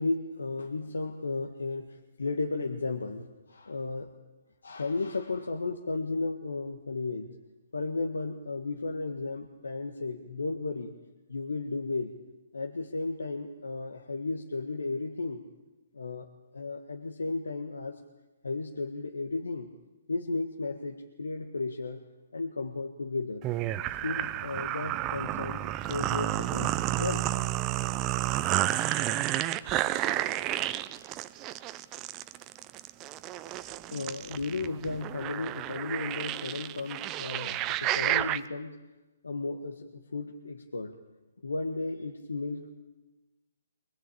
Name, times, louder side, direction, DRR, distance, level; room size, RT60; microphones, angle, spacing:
voice 1, 0.0-4.1 4.6-7.3 7.7-10.9 11.3-12.2 12.5-15.4 15.9-18.0 18.4-19.7 20.1-22.0 22.3-23.5 24.0-27.3 28.3-29.1 30.9-31.1 33.7-38.8 39.2-41.0 41.4-42.7, left 3 dB, 75° left, 4 dB, 1.7 m, -34 dB
sound 1, 23.4-38.4, right 14 dB, 25° right, 0.8 m, -31 dB
24.0 x 20.0 x 8.5 m, 1.1 s
figure-of-eight pair, 135°, 0 cm